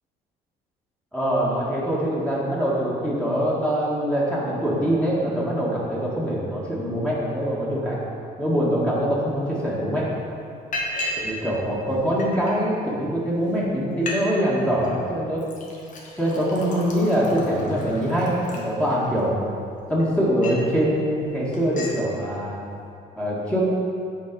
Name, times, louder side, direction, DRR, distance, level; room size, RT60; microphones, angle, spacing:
voice 1, 1.1-8.0 8.4-10.1 11.2-15.4 16.2-19.4 19.9-22.6 23.2-23.6, equal, 5° left, -7 dB, 1.8 m, -23 dB
Liquid, 9.6-9.7 10.0-10.2 10.7-11.3 11.6-12.5 13.2-13.3 13.6-13.7 13.9-14.2 14.5-14.9 15.4-19.2 19.7-20.7 21.1-21.3 21.5-22.0, left 1 dB, 50° left, 1.5 m, -34 dB
7.4 x 4.8 x 5.4 m, 2.5 s
cardioid pair, 110°, 17 cm